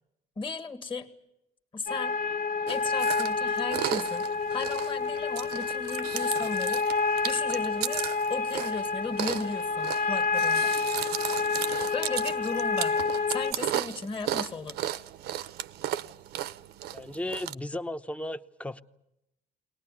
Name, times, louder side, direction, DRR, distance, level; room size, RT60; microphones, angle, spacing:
voice 1, 0.4-1.1 1.7-2.2 2.7-6.9 7.2-8.0 8.3-10.8 11.9-13.0 13.3-14.9, left 4 dB, 30° left, 1.9 m, -35 dB
sound 1, 1.9-13.5, left 4 dB, 70° left, 1.1 m, -29 dB
Chewing mastication, 2.7-17.5, right 12 dB, 75° right, 0.8 m, -35 dB
voice 2, 16.9-18.8, left 1 dB, 10° left, 0.9 m, -35 dB
22.0 x 19.0 x 10.0 m
cardioid pair, 110°, 17 cm